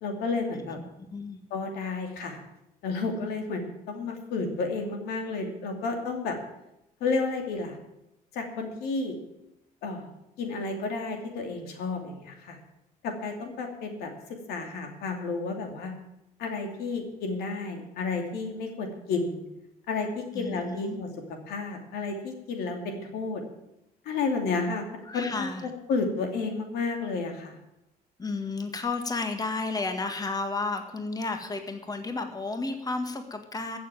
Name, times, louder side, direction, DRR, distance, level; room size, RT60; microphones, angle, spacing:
voice 1, 0.0-0.8 1.5-2.4 2.8-6.4 7.0-7.8 8.3-9.1 9.8-10.1 10.4-12.6 13.0-14.1 14.5-15.9 16.4-19.4 19.9-21.1 21.5-23.4 24.0-24.9 25.1-27.6, left 4 dB, 85° left, 3 dB, 2.7 m, -31 dB
voice 2, 20.3-21.0 25.1-25.6 28.2-33.8, left 3 dB, 25° left, 6 dB, 1.7 m, -32 dB
14.5 x 7.0 x 9.0 m, 0.87 s
cardioid pair, 95°, 16 cm